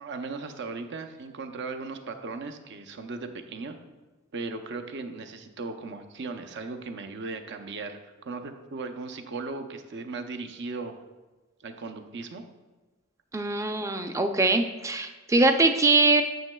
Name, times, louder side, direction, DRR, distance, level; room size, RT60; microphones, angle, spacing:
voice 1, 0.0-3.8 4.3-10.9 11.6-12.4, right 3 dB, 60° right, 6 dB, 0.6 m, -37 dB
voice 2, 13.3-16.2, right 3 dB, 15° right, 6 dB, 0.4 m, -22 dB
9.2 x 7.3 x 2.3 m, 1.2 s
head